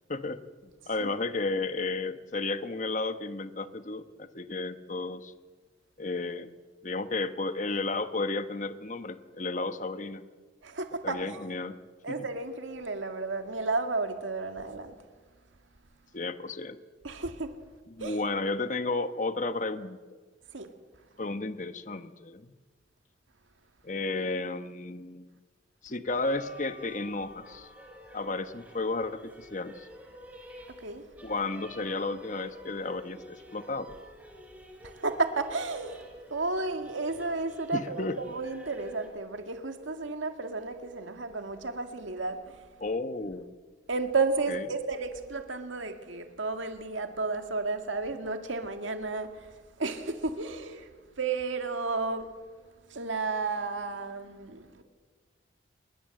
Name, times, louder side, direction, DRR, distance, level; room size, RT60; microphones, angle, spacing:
voice 1, 0.1-5.3 6.0-6.6 6.8-10.2 11.0-11.8 16.1-16.8 17.9-20.0 21.2-22.5 23.8-25.3 25.8-27.7 28.1-29.9 31.2-33.9 37.7-38.2 42.8-43.5 44.5-44.6, left 3 dB, 40° left, 1.1 m, -33 dB
voice 2, 10.6-11.4 12.0-14.9 17.0-17.6 18.0-18.2 20.5-20.7 30.7-31.1 34.8-36.0 36.3-42.8 43.9-50.9 51.2-52.3 52.9-54.8, right 3 dB, 90° right, 2.1 m, -32 dB
sound 1, 26.1-39.1, equal, 10° right, 4.4 m, -49 dB
28.0 x 21.5 x 7.7 m
head